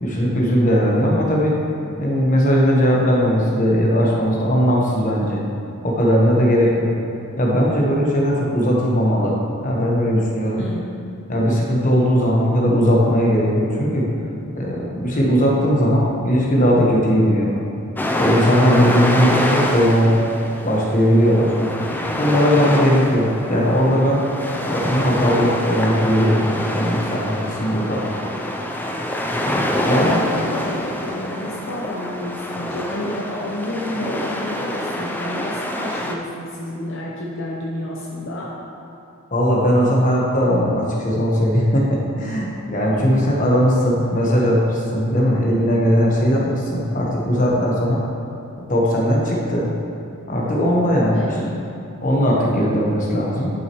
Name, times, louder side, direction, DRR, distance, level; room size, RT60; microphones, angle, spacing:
voice 1, 0.0-1.6 2.0-5.4 5.8-6.9 7.4-10.6 11.3-14.1 14.5-17.5 18.2-20.2 20.6-21.5 22.2-24.2 24.7-26.5 26.7-28.0 29.4-30.2 39.3-48.0 48.7-49.7 50.3-51.3 52.0-53.5, equal, 35° left, -3 dB, 1.2 m, -18 dB
voice 2, 10.5-11.0 18.7-19.0 29.9-38.5 43.2-43.3 51.1-51.7, left 1 dB, 55° left, -4 dB, 0.9 m, -30 dB
sound 1, 18.0-36.1, left 1 dB, 10° left, 0.4 m, -25 dB
11.5 x 6.1 x 3.1 m, 2.8 s
head